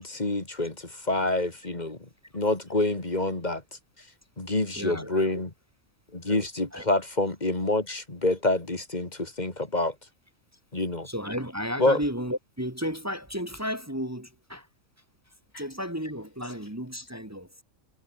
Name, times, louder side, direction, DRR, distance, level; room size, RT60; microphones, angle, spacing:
voice 1, 0.0-3.6 4.4-5.5 6.1-9.9 10.7-11.1 11.8-12.0, left 2 dB, 30° left, 2.6 m, -27 dB
voice 2, 4.7-5.4 6.7-6.8 11.0-14.7 15.6-17.5, equal, 10° right, 1.7 m, -33 dB
omnidirectional pair, 1.4 m